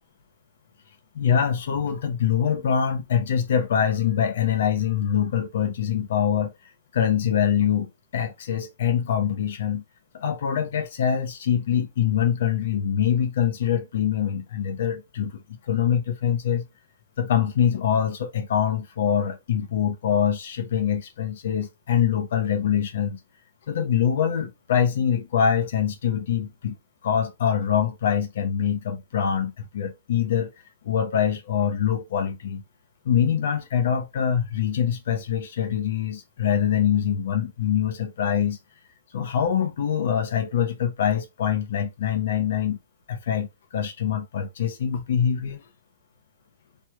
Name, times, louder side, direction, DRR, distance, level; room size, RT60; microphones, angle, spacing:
voice 1, 1.1-6.5 6.9-9.8 10.1-16.6 17.2-23.2 23.7-26.8 27.0-30.5 30.8-32.6 33.0-38.6 39.1-42.8 43.1-45.6, left 8 dB, 60° left, 0.7 m, -24 dB
3.2 x 3.0 x 2.2 m
hypercardioid pair, 160°, 0 cm